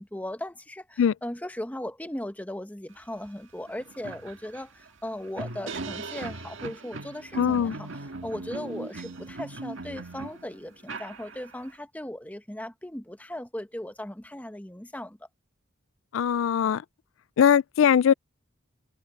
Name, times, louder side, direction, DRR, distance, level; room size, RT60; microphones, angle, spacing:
voice 1, 0.0-15.2, left 1 dB, 10° left, 0.9 m, -38 dB
sound 1, 3.3-3.4 3.7-11.7, right 3 dB, 70° right, 1.8 m, -39 dB
voice 2, 7.4-7.8 16.1-16.8 17.4-18.1, left 8 dB, 75° left, 0.3 m, -21 dB
head